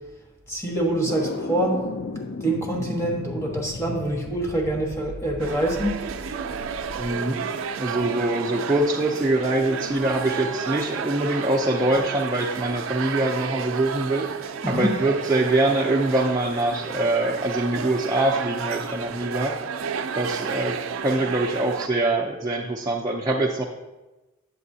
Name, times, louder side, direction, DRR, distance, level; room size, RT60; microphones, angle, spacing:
voice 1, 0.5-1.8 2.4-6.1 14.6-14.9, right 1 dB, 15° left, 0 dB, 1.3 m, -25 dB
sound 1, 1.1-7.1, left 3 dB, 65° left, 0.5 m, -35 dB
sound 2, 5.4-21.9, right 6 dB, 75° right, 0.4 m, -32 dB
voice 2, 7.0-7.4 7.8-19.6 20.1-23.6, right 2 dB, 15° right, -4 dB, 0.5 m, -24 dB
8.5 x 8.2 x 2.7 m, 1.1 s
head